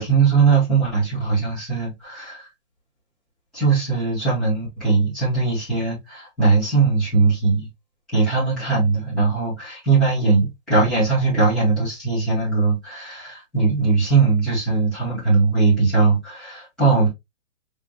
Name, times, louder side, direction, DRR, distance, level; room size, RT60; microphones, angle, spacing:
voice 1, 0.0-2.5 3.5-7.7 8.1-17.1, right 4 dB, ahead, 0.9 m, -20 dB
4.5 x 3.3 x 2.8 m
hypercardioid pair, 180°, 39 cm